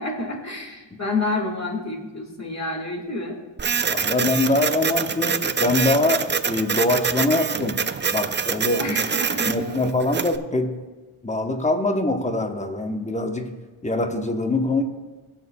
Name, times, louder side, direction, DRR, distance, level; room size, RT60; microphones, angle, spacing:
voice 1, 0.0-3.4 8.8-9.7, left 2 dB, 35° left, 1 dB, 1.8 m, -29 dB
Printer, 3.6-10.4, right 6 dB, 25° right, 0.3 m, -25 dB
voice 2, 3.9-7.8 8.1-9.0 9.4-10.7 11.2-13.5 13.8-14.8, left 2 dB, 15° left, 5 dB, 0.9 m, -23 dB
21.0 x 7.0 x 2.3 m, 1.3 s
wide cardioid pair, 85°, 49 cm